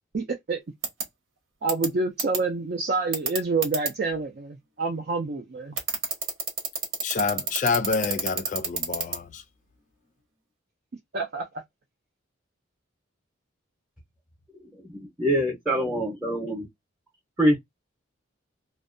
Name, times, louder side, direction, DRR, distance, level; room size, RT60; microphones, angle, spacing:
voice 1, 0.1-0.6 1.6-5.8 11.1-11.5, right 3 dB, 50° right, 0.4 m, -28 dB
sound 1, 0.8-1.0 1.7-1.9 2.2-2.4 3.1-3.9 5.8-9.2, right 5 dB, 75° right, 1.0 m, -27 dB
voice 2, 7.0-9.4, left 4 dB, 40° left, 0.4 m, -27 dB
voice 3, 14.9-16.7 17.4-17.6, equal, 5° right, 0.7 m, -24 dB
2.5 x 2.2 x 2.5 m
head